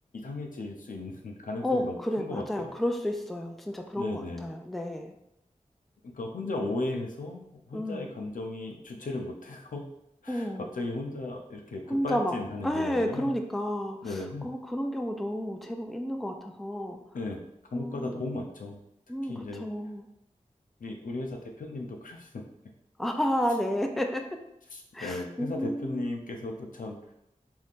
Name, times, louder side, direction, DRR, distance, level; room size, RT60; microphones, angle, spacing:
voice 1, 0.2-2.7 3.9-4.5 6.1-9.9 10.2-13.3 14.0-14.5 17.1-17.4 17.7-18.8 19.2-19.6 20.8-22.4 24.7-27.1, left 2 dB, 85° left, 2 dB, 0.5 m, -36 dB
voice 2, 1.6-5.1 6.4-6.7 7.7-8.1 10.3-10.7 11.9-12.4 12.6-17.0 17.7-18.5 19.1-20.1 23.0-24.2 24.9-26.1, equal, ahead, 4 dB, 0.3 m, -31 dB
2.7 x 2.4 x 3.5 m, 0.81 s
wide cardioid pair, 80°, 13 cm